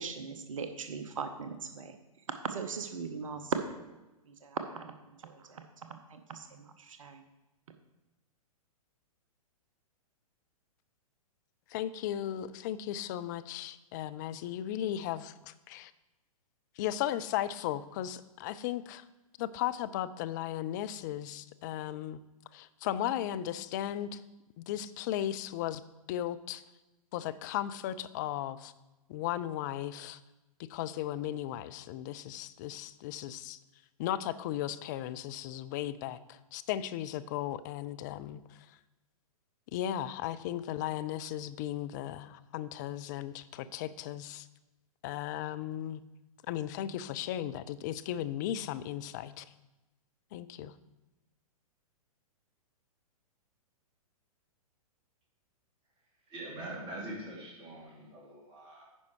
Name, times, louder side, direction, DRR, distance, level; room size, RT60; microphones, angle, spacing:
voice 1, 0.0-2.0 2.4-3.9 4.3-5.6 5.9-7.2, right 5 dB, 60° right, 8 dB, 0.8 m, -39 dB
voice 2, 11.7-15.9 16.8-19.0 19.4-22.2 22.5-24.2 24.6-25.8 26.1-26.6 27.1-28.7 29.1-30.2 30.7-33.6 34.0-38.7 39.7-44.5 45.0-46.0 46.5-49.5 50.3-50.7, left 12 dB, 30° left, 13 dB, 0.4 m, -36 dB
voice 3, 56.3-58.9, right 1 dB, 25° right, -2 dB, 2.6 m, -43 dB
9.7 x 5.4 x 4.7 m, 1.1 s
figure-of-eight pair, 110°, 19 cm